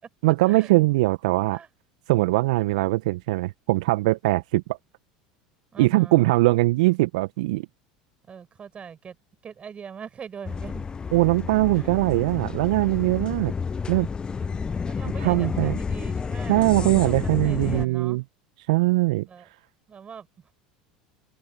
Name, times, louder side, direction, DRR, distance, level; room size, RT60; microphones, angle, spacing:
voice 1, 0.2-1.6 2.1-4.8 5.8-7.7 11.1-13.5 13.9-14.1 15.2-15.8 16.5-18.2 18.7-19.5, right 21 dB, 65° right, 1.4 m, -21 dB
voice 2, 5.7-6.3 8.2-9.2 9.4-10.8 11.7-12.0 14.4-18.2 19.2-19.5 19.9-20.3, right 7 dB, 30° right, 6.6 m, -42 dB
sound 1, 10.4-17.9, left 5 dB, 20° left, 0.5 m, -30 dB
open air
hypercardioid pair, 75°, 4 cm